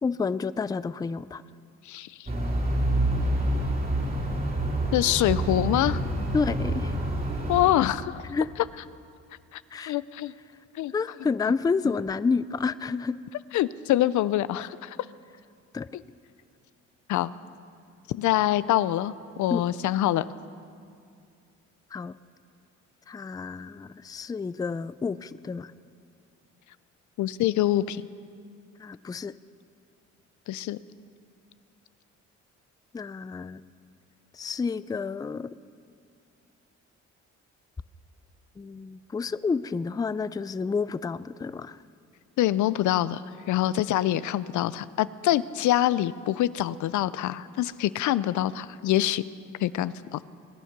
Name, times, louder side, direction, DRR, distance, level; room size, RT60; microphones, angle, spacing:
voice 1, 0.0-1.4 6.3-7.0 8.3-8.5 9.7-10.0 10.9-13.2 15.7-15.9 19.5-19.6 21.9-22.2 23.1-25.7 28.8-29.3 32.9-33.6 34.3-35.5 38.6-41.8, left 4 dB, 15° left, 16 dB, 0.4 m, -29 dB
voice 2, 1.9-2.3 4.9-6.0 7.5-8.2 9.5-10.3 10.8-10.9 13.5-15.0 17.1-17.3 18.1-20.3 27.2-28.0 30.5-30.8 42.4-43.2 43.5-49.3 49.6-50.3, left 13 dB, 75° left, 17 dB, 0.5 m, -25 dB
sound 1, 2.3-7.7, right 1 dB, 30° right, 2.9 m, -27 dB
22.5 x 10.0 x 6.0 m, 2.3 s
cardioid pair, 90°, 30 cm